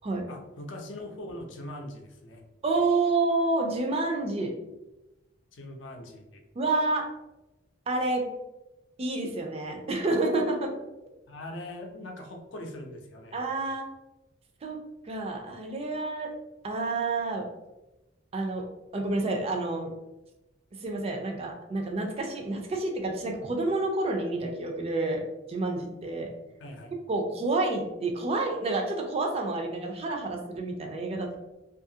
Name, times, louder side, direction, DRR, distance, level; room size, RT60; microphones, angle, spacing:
voice 1, 0.3-2.4 5.5-6.4 11.3-13.4 26.6-26.9, left 1 dB, 70° left, 2 dB, 0.5 m, -41 dB
voice 2, 2.6-4.5 6.5-7.1 7.9-8.3 9.0-10.7 13.3-13.9 14.6-14.8 15.0-16.3 16.6-17.5 18.3-18.7 18.9-19.9 20.7-25.2 25.5-26.3 27.1-31.4, right 2 dB, 30° right, 2 dB, 0.4 m, -29 dB
2.7 x 2.4 x 2.7 m, 0.99 s
head